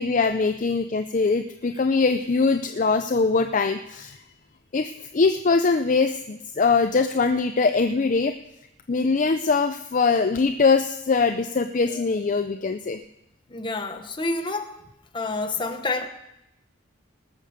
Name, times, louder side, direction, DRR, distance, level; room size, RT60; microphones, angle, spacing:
voice 1, 0.0-4.2 4.7-8.3 8.9-13.0, left 4 dB, 40° left, 7 dB, 0.4 m, -22 dB
voice 2, 13.5-14.7 15.1-16.1, left 3 dB, 25° left, 5 dB, 1.0 m, -28 dB
19.0 x 6.8 x 6.5 m, 0.86 s
head